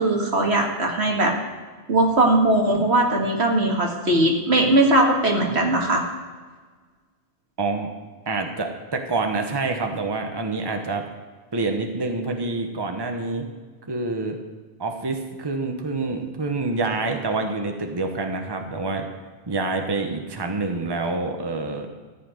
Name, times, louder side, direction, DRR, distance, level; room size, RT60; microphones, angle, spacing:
voice 1, 0.0-1.3 1.9-6.0, right 1 dB, 75° right, 1 dB, 2.1 m, -19 dB
voice 2, 7.6-7.9 8.3-11.1 11.5-13.4 13.9-14.4 14.8-19.1 19.5-21.9, right 3 dB, 20° right, 4 dB, 1.1 m, -27 dB
14.0 x 5.9 x 9.4 m, 1.4 s
omnidirectional pair, 1.1 m